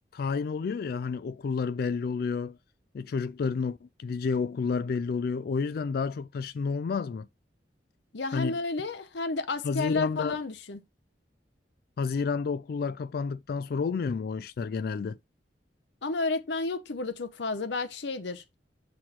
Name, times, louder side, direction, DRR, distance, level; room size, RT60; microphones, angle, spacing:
voice 1, 0.1-2.6 2.9-7.3 8.3-8.6 9.6-10.4 12.0-15.2, left 5 dB, 60° left, 0.3 m, -30 dB
voice 2, 8.1-10.8 16.0-18.4, left 3 dB, 80° left, 0.8 m, -31 dB
6.0 x 3.1 x 5.8 m
head